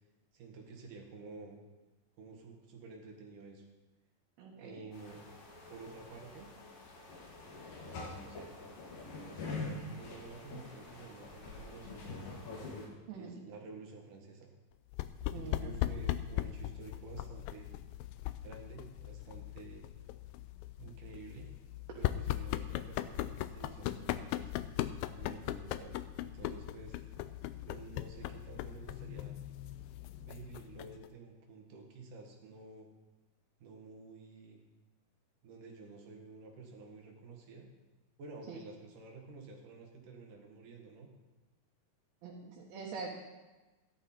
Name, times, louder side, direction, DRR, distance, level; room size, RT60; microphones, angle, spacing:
voice 1, 0.3-1.6 2.2-3.6 4.6-5.3 5.7-6.5 7.8-8.5 9.2-12.3 13.1-14.5 15.3-17.7 18.4-19.8 20.8-21.5 22.0-24.5 25.1-27.0 27.7-29.4 30.2-32.9 33.6-34.6 35.4-37.7 38.2-41.1, right 4 dB, 65° right, 1 dB, 3.1 m, -51 dB
voice 2, 4.4-4.8 13.1-13.4 15.3-15.8 38.5-38.6 42.2-43.1, right 4 dB, 90° right, -4 dB, 3.3 m, -44 dB
sound 1, 4.9-12.9, left 3 dB, 70° left, 3.4 m, -45 dB
sound 2, 14.9-31.1, left 13 dB, 85° left, 2.3 m, -39 dB
14.0 x 11.0 x 4.3 m, 1.1 s
omnidirectional pair, 4.0 m